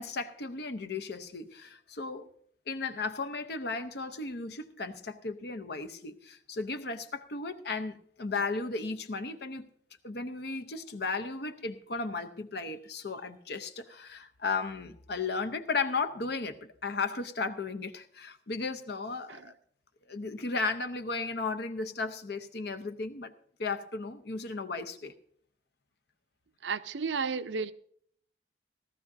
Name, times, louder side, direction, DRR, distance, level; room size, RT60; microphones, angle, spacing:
voice 1, 0.0-2.3 2.7-9.7 10.0-19.5 20.1-23.3 23.6-25.1, left 4 dB, 60° left, 0.8 m, -35 dB
voice 2, 26.6-27.7, right 5 dB, 75° right, 0.6 m, -33 dB
18.0 x 13.0 x 2.7 m
head